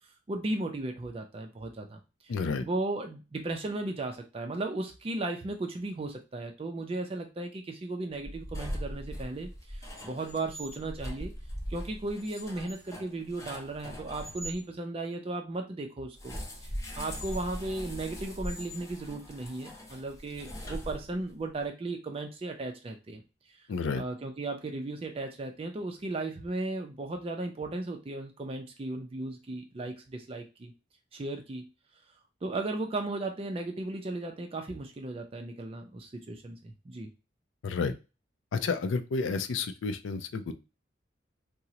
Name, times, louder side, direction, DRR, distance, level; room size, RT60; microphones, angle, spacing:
voice 1, 0.3-2.4 2.6-11.3 11.7-16.4 16.6-23.2 23.5-23.7 24.0-30.7 31.1-31.7 32.4-37.1, right 2 dB, 30° right, 4 dB, 0.4 m, -36 dB
voice 2, 2.3-2.6 23.7-24.0 37.6-37.9 38.5-40.5, left 4 dB, 85° left, 10 dB, 0.4 m, -30 dB
sound 1, 8.2-14.6 16.2-21.4, equal, 15° left, 0.6 m, -40 dB
3.7 x 2.0 x 2.8 m, 0.29 s
head